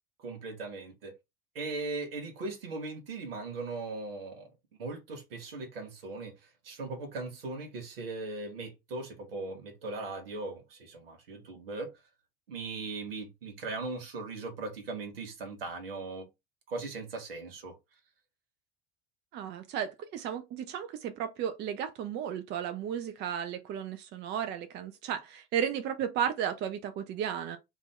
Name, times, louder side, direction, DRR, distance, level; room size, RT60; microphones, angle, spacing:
voice 1, 0.2-1.1 1.5-4.5 4.8-6.3 6.6-11.9 12.5-16.3 16.7-17.8, right 3 dB, 75° right, 0.9 m, -39 dB
voice 2, 19.3-27.6, right 9 dB, 35° right, 0.5 m, -34 dB
2.5 x 2.4 x 3.1 m
figure-of-eight pair, 65°, 29 cm